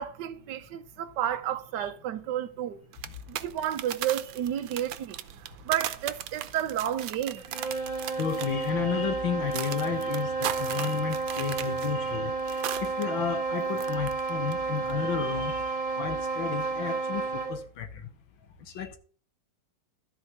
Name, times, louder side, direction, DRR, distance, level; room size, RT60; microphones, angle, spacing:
voice 1, 0.0-2.8 3.3-5.2 5.6-7.7, right 11 dB, 70° right, 1.4 m, -31 dB
sound 1, 2.9-13.0 13.3-14.5 14.8-15.0, right 11 dB, 90° right, 1.6 m, -38 dB
sound 2, 7.4-17.7, right 4 dB, 15° right, 2.4 m, -31 dB
voice 2, 8.2-18.1 18.7-19.0, left 8 dB, 85° left, 2.1 m, -33 dB
13.0 x 4.6 x 7.9 m
omnidirectional pair, 2.1 m